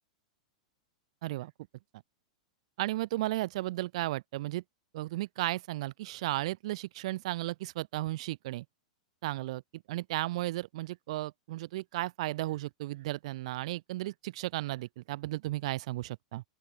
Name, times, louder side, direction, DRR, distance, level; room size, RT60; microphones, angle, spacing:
voice 1, 1.2-1.5 2.8-4.6 4.9-8.6 9.2-16.4, right 17 dB, 60° right, 4.4 m, -34 dB
open air
hypercardioid pair, 100°, 4 cm